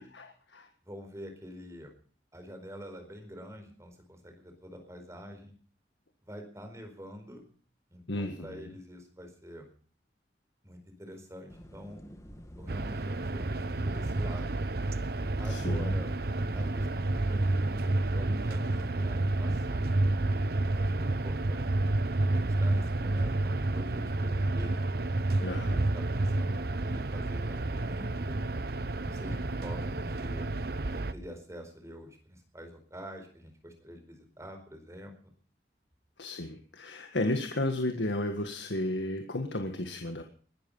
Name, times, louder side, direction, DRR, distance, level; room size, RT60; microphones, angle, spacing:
voice 1, 0.1-0.7 8.1-8.7 15.4-16.0 25.4-25.9 36.2-40.2, left 1 dB, 85° left, 5 dB, 1.8 m, -33 dB
voice 2, 0.8-1.9 2.3-5.5 6.2-7.4 7.9-9.7 10.6-12.0 12.6-14.6 15.4-16.1 16.5-19.9 20.7-21.7 22.3-24.8 25.6-28.4 29.0-30.5 30.8-35.3, equal, 15° right, 5 dB, 4.5 m, -46 dB
sound 1, 11.5-18.9, equal, 15° left, 2.1 m, -51 dB
sound 2, 12.7-31.1, right 2 dB, 60° right, 0.9 m, -30 dB
21.0 x 12.5 x 5.6 m, 0.43 s
head